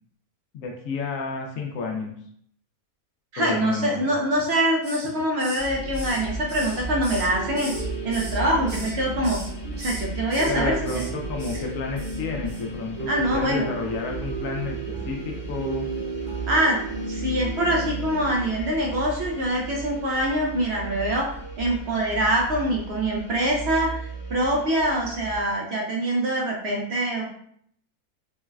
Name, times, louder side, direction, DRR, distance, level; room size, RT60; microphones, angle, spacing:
voice 1, 0.5-2.2 3.4-4.1 10.5-15.9, left 4 dB, 70° left, 1 dB, 0.9 m, -31 dB
voice 2, 3.3-9.4 9.8-11.0 13.1-13.7 16.5-16.8 17.1-21.3 21.6-27.2, right 1 dB, 65° right, -2 dB, 0.7 m, -24 dB
Hiss, 4.4-5.1 5.4-7.8 8.1-8.9 9.2-9.5 9.8-10.5 10.8-11.1 11.4-11.6 12.0-12.2 12.5-12.6, right 1 dB, 25° right, 0.6 m, -39 dB
sound 1, 5.6-25.4, right 2 dB, 40° left, 0.5 m, -36 dB
sound 2, 7.3-18.5, right 4 dB, 80° right, 1.8 m, -35 dB
3.8 x 2.0 x 2.3 m, 0.66 s
omnidirectional pair, 1.6 m